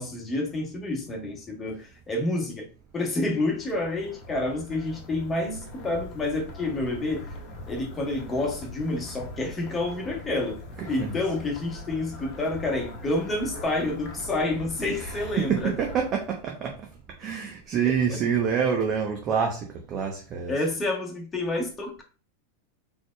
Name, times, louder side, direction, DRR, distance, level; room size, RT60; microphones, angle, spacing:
voice 1, 0.0-2.7 2.9-7.3 7.7-10.6 10.9-15.7 18.1-18.2 20.5-22.0, left 2 dB, 20° left, 1.2 m, -29 dB
sound 1, 3.0-16.5, left 1 dB, 45° left, 1.0 m, -41 dB
voice 2, 10.8-11.1 15.0-16.7 17.2-20.5, right 7 dB, 40° right, 0.8 m, -27 dB
4.0 x 3.5 x 2.2 m
hypercardioid pair, 95°, 0 cm